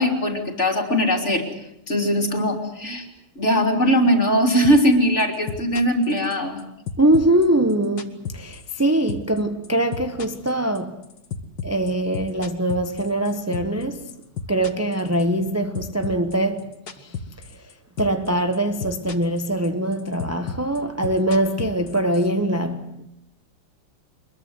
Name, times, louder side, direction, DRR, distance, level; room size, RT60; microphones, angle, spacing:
voice 1, 0.0-1.4 1.9-3.1 3.4-6.6, equal, 30° left, 3.5 m, -20 dB
sound 1, 4.6-4.9 5.2-6.6 6.9-8.8 9.1-9.4 9.6-13.8 14.1-15.5 15.7-17.7 18.0-18.3 18.5-19.4 19.6-22.3, left 6 dB, 55° left, 2.2 m, -32 dB
voice 2, 7.0-11.0 11.6-14.2 14.5-17.1 18.0-23.1, right 1 dB, 15° right, 0.6 m, -23 dB
24.5 x 22.0 x 8.1 m
omnidirectional pair, 2.3 m